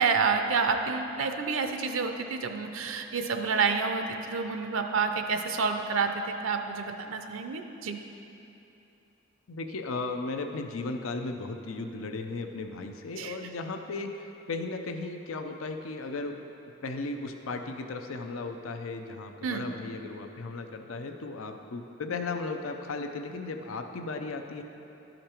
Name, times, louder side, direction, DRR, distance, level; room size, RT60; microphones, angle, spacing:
voice 1, 0.0-8.0 13.2-13.4 19.4-19.7, right 5 dB, 75° right, 6 dB, 0.5 m, -29 dB
voice 2, 9.5-16.4 16.8-24.6, left 3 dB, 80° left, 5 dB, 0.6 m, -36 dB
12.0 x 5.2 x 4.4 m, 2.9 s
head